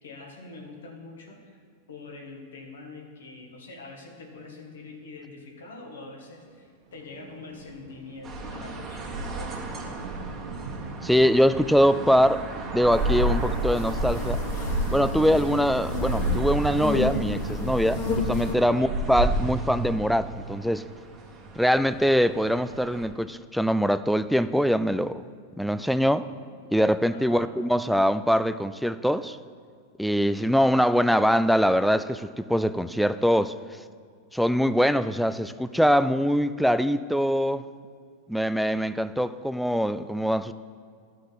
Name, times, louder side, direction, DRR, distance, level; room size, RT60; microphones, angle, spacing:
voice 1, 0.0-1.6 1.9-9.6 18.6-18.9 27.1-27.5, left 3 dB, 85° left, 1 dB, 1.6 m, -44 dB
Thunder, 6.6-13.4, right 4 dB, 70° right, 1.0 m, -43 dB
sound 1, 8.2-23.1, right 2 dB, 25° right, 1.6 m, -32 dB
voice 2, 11.0-12.5 12.7-14.4 14.9-20.8 21.6-25.2 25.6-26.3 26.7-29.4 30.0-33.5 34.3-37.6 38.3-40.5, equal, ahead, 13 dB, 0.3 m, -23 dB
sound 2, 12.9-18.5, left 2 dB, 45° left, 1.8 m, -30 dB
13.0 x 5.0 x 4.1 m, 2.2 s
hypercardioid pair, 105°, 0 cm